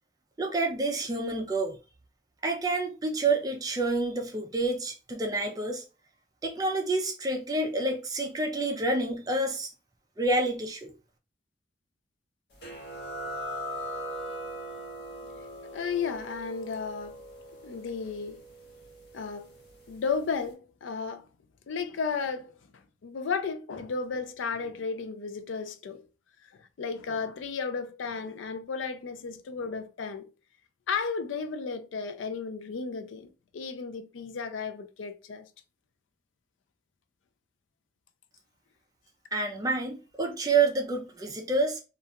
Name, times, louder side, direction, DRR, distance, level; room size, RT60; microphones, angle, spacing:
voice 1, 0.4-1.8 2.4-5.8 6.4-9.7 10.2-10.9 39.3-41.8, right 3 dB, 20° right, 0.4 m, -28 dB
sound 1, 12.6-19.9, equal, 60° left, 1.0 m, -40 dB
voice 2, 15.7-17.2 17.6-18.4 19.1-19.5 19.9-21.3 21.7-22.5 23.0-26.0 26.6-30.3 30.9-35.5, left 5 dB, 85° left, 0.4 m, -34 dB
2.4 x 2.2 x 2.8 m
head